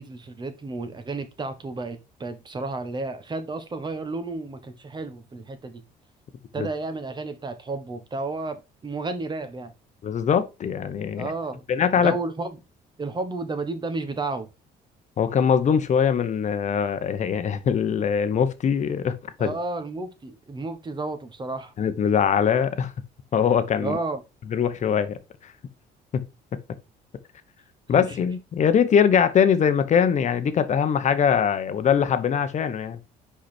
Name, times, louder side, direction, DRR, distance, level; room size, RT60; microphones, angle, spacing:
voice 1, 0.0-5.8 6.5-9.7 11.2-11.6 12.0-12.6 13.0-14.5 19.4-21.7 23.8-24.2 27.9-28.2, right 3 dB, 25° right, 1.4 m, -32 dB
voice 2, 10.0-11.3 11.7-12.1 15.2-19.5 21.8-22.9 23.3-24.0 24.5-25.2 26.1-26.2 27.9-33.0, left 7 dB, 45° left, 1.1 m, -22 dB
5.3 x 5.0 x 4.4 m
cardioid pair, 110°, 17 cm